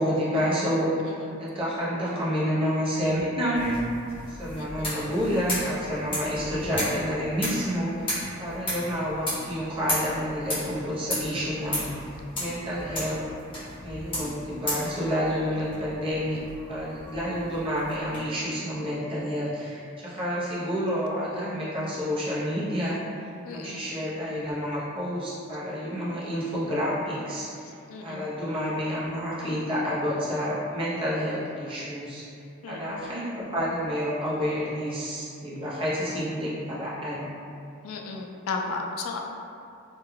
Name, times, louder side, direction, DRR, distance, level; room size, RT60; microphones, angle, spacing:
voice 1, 0.0-1.1 1.4-3.8 4.3-7.9 8.4-11.9 12.4-13.2 13.8-16.4 16.7-23.0 23.5-27.5 28.0-32.2 32.7-37.3, equal, 25° right, -9 dB, 0.6 m, -29 dB
sound 1, 3.5-18.2, equal, 25° left, 0.8 m, -35 dB
voice 2, 4.5-5.0 15.5-15.6 23.4-23.8 27.9-28.3 32.6-33.1 37.8-39.2, left 4 dB, 75° left, 1 dB, 0.3 m, -35 dB
2.2 x 2.2 x 3.1 m, 2.5 s
head